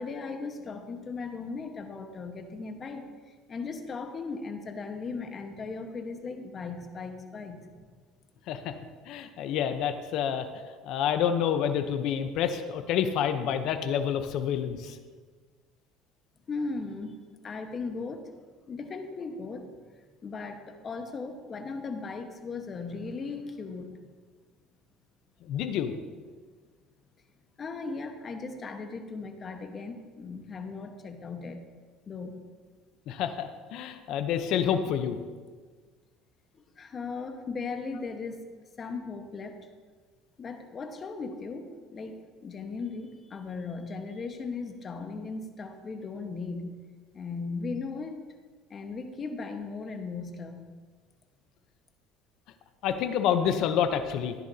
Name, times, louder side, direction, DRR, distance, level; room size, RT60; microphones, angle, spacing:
voice 1, 0.0-3.1 3.5-7.8 16.5-17.2 17.4-18.3 18.7-19.6 20.2-24.0 27.6-31.6 32.1-32.4 36.8-38.4 38.8-39.6 40.4-46.8 47.1-48.2 48.7-50.7, left 4 dB, 35° left, 5 dB, 1.3 m, -37 dB
voice 2, 9.1-10.5 10.8-15.0 25.5-25.9 33.1-35.2 52.8-54.3, left 8 dB, 65° left, 8 dB, 0.8 m, -28 dB
14.0 x 10.5 x 2.8 m, 1.5 s
cardioid pair, 115°, 0 cm